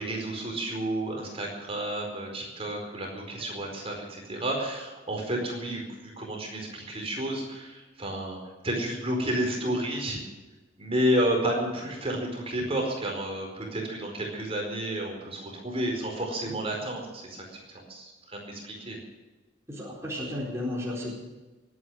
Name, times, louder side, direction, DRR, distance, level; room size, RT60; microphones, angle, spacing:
voice 1, 0.0-8.4 8.6-10.2 10.8-19.0, right 1 dB, 30° right, 1 dB, 4.6 m, -31 dB
voice 2, 19.7-21.1, left 1 dB, 15° right, -5 dB, 4.3 m, -33 dB
23.0 x 9.8 x 6.4 m, 1.2 s
head